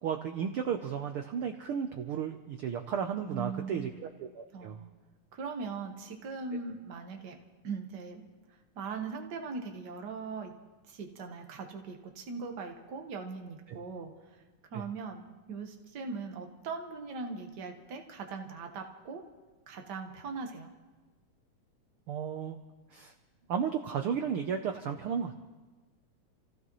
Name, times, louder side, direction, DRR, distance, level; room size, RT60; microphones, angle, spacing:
voice 1, 0.0-4.8 14.7-14.8 22.1-22.6 22.9-23.1 23.5-25.4, right 7 dB, 85° right, 5 dB, 1.2 m, -34 dB
voice 2, 3.3-4.0 4.5-4.9 5.3-7.4 7.6-8.2 8.7-10.5 10.9-14.1 14.7-19.2 19.7-20.7, right 4 dB, 50° right, 3 dB, 1.3 m, -40 dB
29.5 x 15.5 x 3.1 m, 1.3 s
omnidirectional pair, 3.4 m